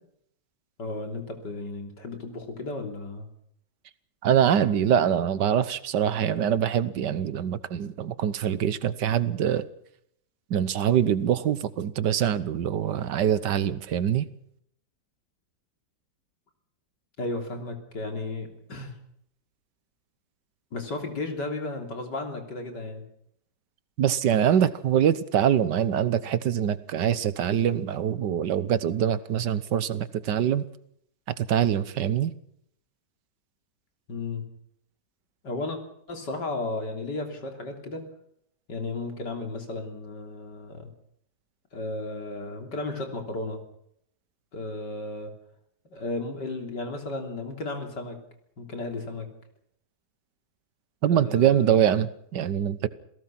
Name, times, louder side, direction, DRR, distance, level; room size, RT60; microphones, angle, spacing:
voice 1, 0.8-3.3 17.2-18.9 20.7-23.0 34.1-34.4 35.4-35.8 36.1-38.1 38.7-40.9 41.7-43.6 44.5-45.3 45.9-48.2 48.6-49.3 51.1-51.8, left 2 dB, 90° left, 4 dB, 3.9 m, -34 dB
voice 2, 4.2-9.7 10.5-14.3 24.0-30.6 31.5-32.3 51.0-52.9, right 9 dB, 80° right, 15 dB, 1.7 m, -24 dB
27.5 x 17.5 x 6.0 m, 0.71 s
omnidirectional pair, 1.8 m